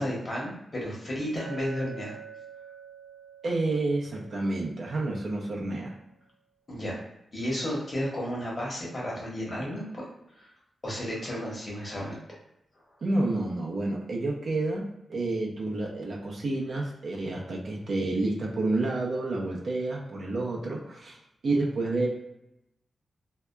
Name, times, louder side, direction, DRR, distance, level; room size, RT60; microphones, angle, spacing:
voice 1, 0.0-2.1 6.7-7.0 7.3-10.0 10.4-10.5 10.8-12.2, equal, 40° left, -4 dB, 1.0 m, -33 dB
Chink clink, 1.4-5.6, right 6 dB, 5° right, 0.7 m, -47 dB
voice 2, 3.4-5.9 13.0-21.2 21.4-22.1, right 2 dB, 60° right, -2 dB, 0.6 m, -29 dB
2.7 x 2.2 x 2.2 m, 0.82 s
cardioid pair, 85°, 0 cm